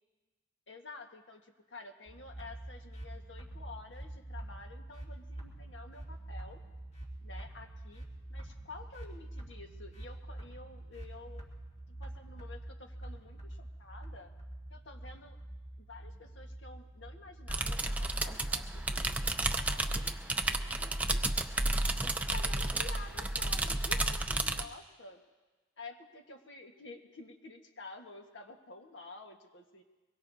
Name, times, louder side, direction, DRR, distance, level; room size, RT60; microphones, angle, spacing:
voice 1, 0.7-6.6 7.2-11.5 12.0-14.3 14.7-15.4 15.8-21.3 22.1-25.2 25.8-29.8, left 3 dB, 70° left, 3 dB, 1.5 m, -50 dB
sound 1, 2.1-19.3, right 1 dB, 35° left, 2.7 m, -46 dB
sound 2, 17.5-24.7, right 2 dB, 10° right, 0.5 m, -32 dB
23.5 x 22.0 x 2.8 m, 1.3 s
head